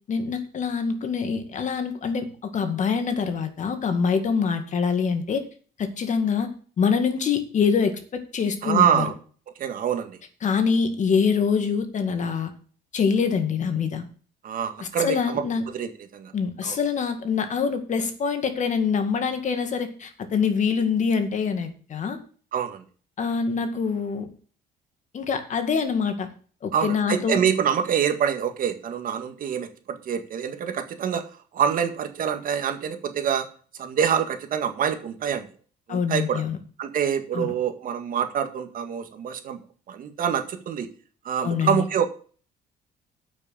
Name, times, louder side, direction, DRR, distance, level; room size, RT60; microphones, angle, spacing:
voice 1, 0.1-5.4 5.8-6.5 6.8-9.1 10.4-12.5 12.9-14.0 14.8-15.7 16.3-22.2 23.2-24.3 25.1-26.3 26.6-27.4 35.9-36.6 37.3-37.5 41.4-41.8, left 6 dB, 45° left, 7 dB, 2.0 m, -25 dB
voice 2, 8.6-9.1 9.6-10.2 14.4-16.3 16.6-16.8 22.5-22.8 26.7-31.2 31.5-33.4 33.8-35.4 35.9-36.4 36.8-39.6 39.9-40.9 41.2-42.1, right 8 dB, 55° right, 7 dB, 1.8 m, -26 dB
8.9 x 6.3 x 7.4 m, 0.42 s
cardioid pair, 110°, 17 cm